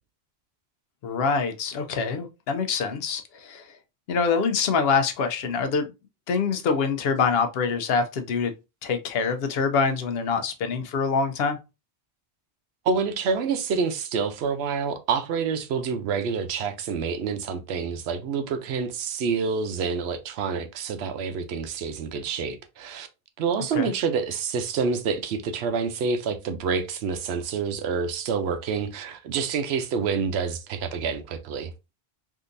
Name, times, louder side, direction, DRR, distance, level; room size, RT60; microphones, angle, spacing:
voice 1, 1.0-3.6 4.1-5.9 6.3-8.5 8.8-11.6 23.7-23.9, left 5 dB, 70° left, 0.8 m, -25 dB
voice 2, 12.9-23.1 23.4-31.7, right 5 dB, 85° right, 0.8 m, -27 dB
3.7 x 2.6 x 2.5 m
omnidirectional pair, 1.1 m